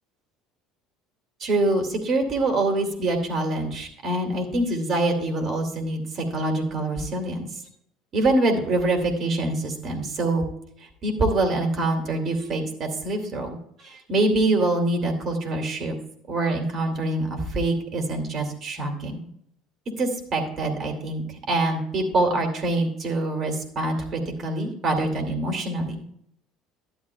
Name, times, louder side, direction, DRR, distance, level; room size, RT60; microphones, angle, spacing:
voice 1, 1.4-7.5 8.1-10.5 11.0-15.9 16.3-19.2 20.0-26.0, right 2 dB, 40° right, 3 dB, 2.5 m, -25 dB
12.0 x 10.5 x 2.3 m, 0.70 s
figure-of-eight pair, 65°, 0 cm